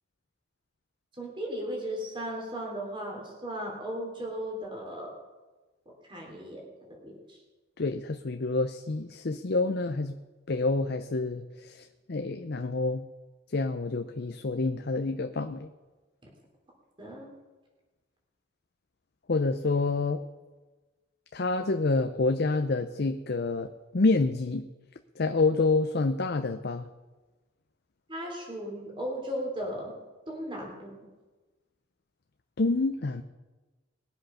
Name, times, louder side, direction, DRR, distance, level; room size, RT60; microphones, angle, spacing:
voice 1, 1.2-5.1 6.1-6.6 6.9-7.4 17.0-17.3 28.1-29.9 30.3-30.9, equal, 25° right, -1 dB, 3.4 m, -36 dB
voice 2, 7.8-10.2 10.5-13.0 13.5-15.7 19.3-20.2 21.3-23.7 23.9-24.6 25.2-26.8 32.6-33.2, left 3 dB, 55° left, 7 dB, 0.6 m, -28 dB
20.5 x 7.9 x 5.7 m, 1.2 s
head